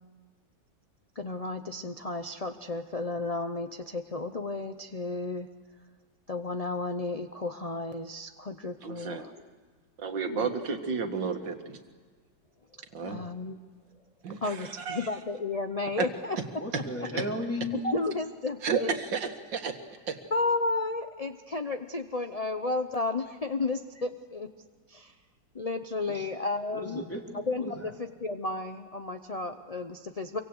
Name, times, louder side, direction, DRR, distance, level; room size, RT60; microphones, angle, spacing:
voice 1, 1.2-5.5 6.3-9.3 10.3-10.5 13.0-13.6 14.4-16.4 17.7-19.0 20.3-24.5 24.9-25.1 25.5-27.0 27.5-30.4, left 3 dB, 55° left, 6 dB, 0.4 m, -33 dB
voice 2, 8.8-9.3 10.0-11.8 12.9-13.2 14.2-15.1 16.0-16.1 16.7-16.8 17.2-17.3 18.6-19.8 20.1-20.2, right 5 dB, 75° right, 6 dB, 2.3 m, -32 dB
voice 3, 16.6-17.8 26.1-26.3 26.7-27.9, left 1 dB, 5° left, 0 dB, 3.1 m, -35 dB
26.0 x 24.0 x 8.0 m, 1.5 s
omnidirectional pair, 2.0 m